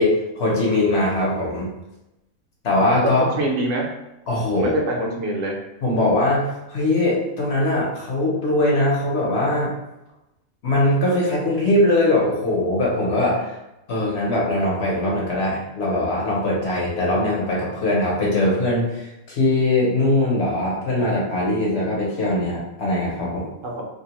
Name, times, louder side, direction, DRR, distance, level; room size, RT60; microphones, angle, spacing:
voice 1, 0.0-1.7 2.6-3.3 4.3-4.7 5.8-9.7 10.6-13.6 13.9-23.5, left 1 dB, 60° left, -5 dB, 0.9 m, -21 dB
voice 2, 3.0-3.9 4.5-5.5 23.6-23.9, right 1 dB, 75° right, 0 dB, 0.9 m, -24 dB
2.6 x 2.1 x 2.9 m, 0.96 s
omnidirectional pair, 1.4 m